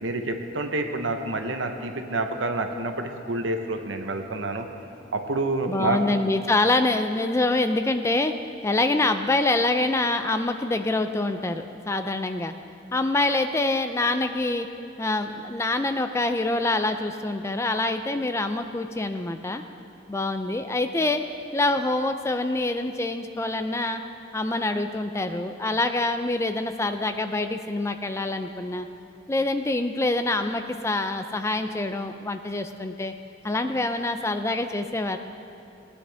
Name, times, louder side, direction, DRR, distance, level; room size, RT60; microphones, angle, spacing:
voice 1, 0.0-4.7 5.1-6.0, right 2 dB, 80° right, 5 dB, 0.9 m, -28 dB
voice 2, 5.7-8.3 8.6-12.5 12.9-14.7 15.0-19.6 20.1-21.2 21.5-24.0 24.3-28.9 29.3-33.1 33.4-35.2, left 2 dB, 15° left, 8 dB, 0.4 m, -25 dB
18.5 x 9.8 x 3.4 m, 2.6 s
head